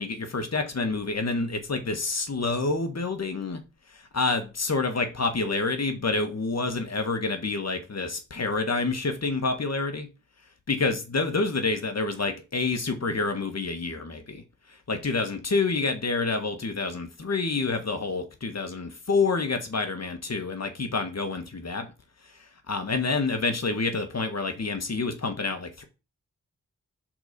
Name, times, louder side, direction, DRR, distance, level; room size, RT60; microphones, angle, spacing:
voice 1, 0.0-3.6 3.9-10.1 10.7-14.4 14.9-21.9 22.7-25.8, left 3 dB, 50° left, 1.6 m, -28 dB
5.9 x 4.2 x 5.3 m
cardioid pair, 50°, 32 cm